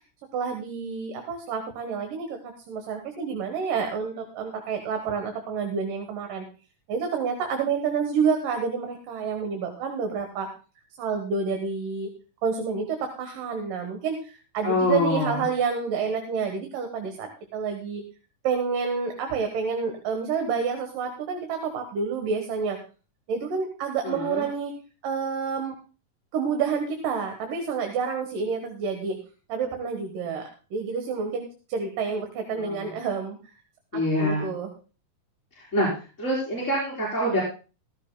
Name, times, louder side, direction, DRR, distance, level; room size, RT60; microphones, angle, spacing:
voice 1, 0.3-6.5 6.9-10.5 11.0-12.1 12.4-18.0 18.4-22.8 23.3-24.7 25.0-25.8 26.3-29.2 29.5-30.4 30.7-33.4 33.9-34.7, right 5 dB, 80° right, 4 dB, 2.9 m, -29 dB
voice 2, 14.6-15.4 24.0-24.5 32.6-32.9 33.9-34.5 35.6-35.9 36.2-37.4, left 1 dB, 20° left, -6 dB, 4.2 m, -25 dB
15.5 x 15.0 x 2.2 m, 0.35 s
omnidirectional pair, 3.8 m